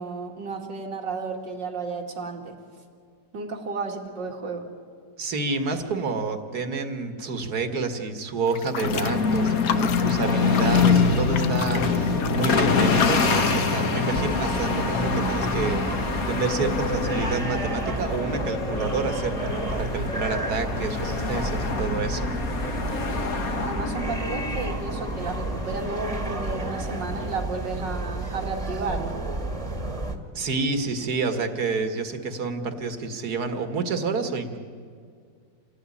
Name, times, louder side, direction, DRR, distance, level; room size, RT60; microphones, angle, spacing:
voice 1, 0.0-2.5 3.3-4.7 23.6-29.2, right 4 dB, 80° right, 3 dB, 3.2 m, -32 dB
voice 2, 5.2-22.3 30.3-34.6, right 4 dB, 60° right, 7 dB, 2.2 m, -29 dB
sound 1, 8.5-13.5, left 9 dB, 70° left, 1.5 m, -33 dB
sound 2, 8.8-27.4, left 4 dB, 55° left, 2.1 m, -26 dB
sound 3, 14.1-30.2, right 2 dB, 20° right, 1.8 m, -31 dB
27.5 x 18.5 x 9.9 m, 2.2 s
omnidirectional pair, 1.9 m